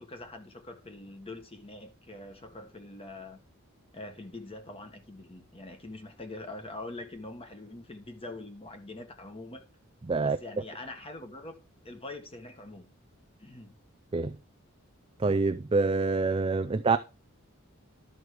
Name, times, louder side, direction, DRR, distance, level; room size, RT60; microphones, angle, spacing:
voice 1, 0.0-3.4 3.9-9.6 10.2-11.5 11.8-12.9 13.4-13.8, left 2 dB, 25° left, 1.5 m, -44 dB
voice 2, 10.1-10.4 14.1-14.3 15.2-17.0, right 3 dB, 25° right, 0.4 m, -26 dB
12.0 x 6.3 x 4.8 m
head